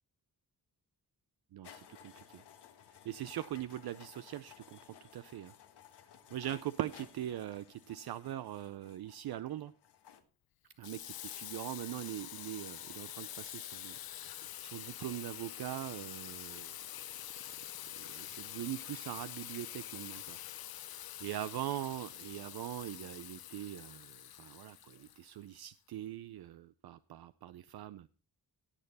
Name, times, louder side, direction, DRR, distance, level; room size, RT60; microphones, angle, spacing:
voice 1, 1.5-2.4 3.0-4.8 5.1-5.5 6.3-9.7 10.8-14.0 14.3-16.8 17.9-20.4 20.7-28.1, right 12 dB, 70° right, 13 dB, 0.5 m, -42 dB
sound 1, 1.6-10.2, left 9 dB, 90° left, 1.4 m, -57 dB
Water tap faucet / Sink (filling or washing), 10.8-25.6, left 12 dB, 65° left, 0.6 m, -46 dB
17.0 x 6.6 x 4.1 m, 0.39 s
cardioid pair, 75°, 39 cm